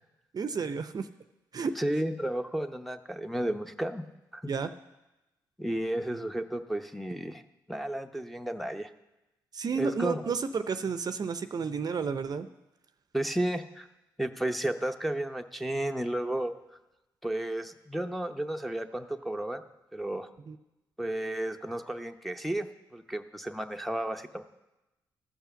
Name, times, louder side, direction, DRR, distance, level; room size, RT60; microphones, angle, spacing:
voice 1, 0.3-1.1 1.5-1.7 4.5-4.7 9.5-12.5 20.5-20.6, right 5 dB, 45° right, 11 dB, 0.6 m, -31 dB
voice 2, 1.8-4.0 4.3-4.5 5.6-7.4 7.7-8.9 9.8-10.3 13.1-13.9 14.2-16.8 17.2-19.6 19.9-20.3 21.0-22.7 22.9-24.4, right 1 dB, ahead, 5 dB, 0.8 m, -32 dB
13.5 x 5.6 x 6.9 m, 0.99 s
supercardioid pair, 60°, 9 cm